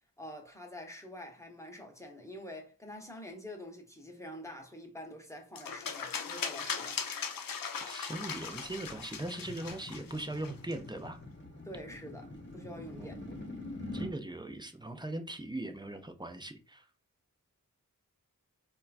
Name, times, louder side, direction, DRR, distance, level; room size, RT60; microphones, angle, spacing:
voice 1, 0.2-7.0 11.6-13.2, left 1 dB, 10° left, 0.8 m, -46 dB
sound 1, 5.6-10.7, left 6 dB, 80° left, 0.5 m, -39 dB
voice 2, 7.8-11.2 12.9-13.4 13.9-16.8, right 2 dB, 15° right, 0.4 m, -40 dB
sound 2, 8.2-14.2, left 1 dB, 35° left, 1.0 m, -45 dB
4.3 x 2.2 x 2.4 m
wide cardioid pair, 75°, 34 cm